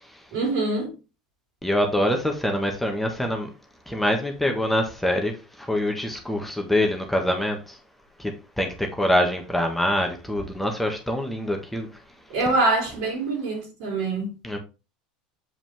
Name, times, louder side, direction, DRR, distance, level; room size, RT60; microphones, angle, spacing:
voice 1, 0.3-0.9 12.3-14.3, right 2 dB, 65° right, 4.2 m, -24 dB
voice 2, 1.6-3.5 3.9-7.8 8.2-11.9 14.4-14.6, left 1 dB, 5° left, 1.5 m, -25 dB
7.7 x 4.9 x 3.6 m
hypercardioid pair, 85°, 4 cm